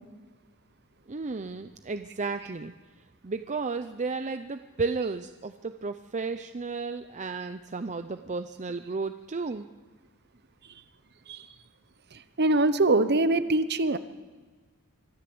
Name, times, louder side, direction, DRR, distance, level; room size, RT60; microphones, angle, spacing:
voice 1, 1.1-2.7 3.2-9.7, right 4 dB, 35° right, 9 dB, 0.6 m, -33 dB
voice 2, 12.4-14.0, right 2 dB, 50° right, 13 dB, 0.9 m, -23 dB
24.5 x 13.5 x 7.8 m, 1.4 s
head